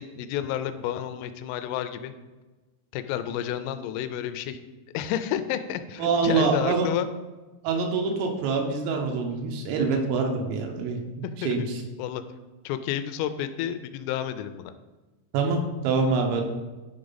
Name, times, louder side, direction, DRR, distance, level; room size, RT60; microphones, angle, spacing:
voice 1, 0.0-2.1 2.9-4.6 4.9-7.1 11.2-11.7 12.0-12.2 12.7-14.7, left 10 dB, 85° left, 10 dB, 3.1 m, -30 dB
voice 2, 6.0-6.9 7.6-11.0 11.5-11.8 15.3-16.4, right 4 dB, 85° right, 2 dB, 3.6 m, -25 dB
10.5 x 4.9 x 4.0 m, 1.2 s
omnidirectional pair, 5.7 m